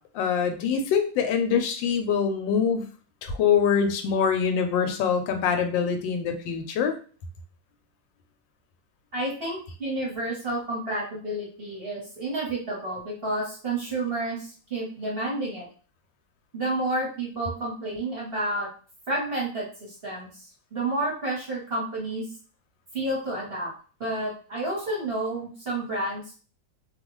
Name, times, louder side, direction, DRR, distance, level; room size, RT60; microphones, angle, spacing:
voice 1, 0.1-2.9 3.2-6.9, left 7 dB, 90° left, 6 dB, 1.3 m, -24 dB
voice 2, 9.1-15.7 16.5-18.7 19.1-22.3 22.9-23.7 24.0-26.4, right 2 dB, 40° right, -5 dB, 1.0 m, -30 dB
2.9 x 2.3 x 3.0 m, 0.40 s
omnidirectional pair, 2.0 m